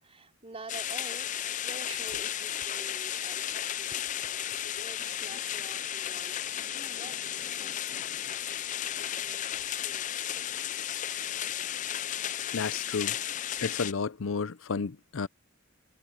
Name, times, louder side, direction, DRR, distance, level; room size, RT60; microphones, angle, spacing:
voice 1, 0.0-6.3 6.7-10.5, right 3 dB, 30° right, 4.5 m, -49 dB
sound 1, 0.7-13.9, left 11 dB, 40° left, 0.4 m, -34 dB
voice 2, 12.5-13.2 13.6-15.3, left 5 dB, 85° left, 0.6 m, -32 dB
head